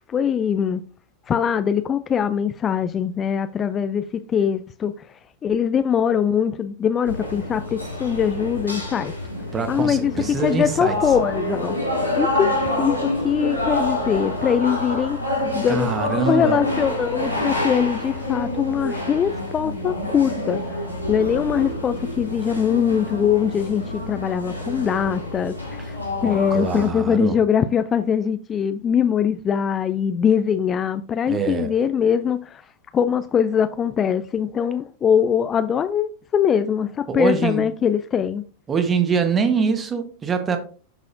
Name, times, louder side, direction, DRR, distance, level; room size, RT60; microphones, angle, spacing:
voice 1, 0.1-0.8 1.3-4.0 4.3-9.1 9.7-10.1 10.4-11.8 12.2-12.5 12.8-15.9 16.3-20.6 21.1-26.0 26.2-32.6 32.9-38.4, left 8 dB, 25° left, 0.4 m, -22 dB
sound 1, 7.0-26.9, left 1 dB, 85° right, 2.3 m, -27 dB
voice 2, 9.5-10.9 15.7-16.6 26.2-27.3 31.3-31.7 37.1-37.6 38.7-40.6, right 5 dB, 20° right, 1.2 m, -23 dB
12.0 x 4.1 x 2.6 m
figure-of-eight pair, 90°, 0 cm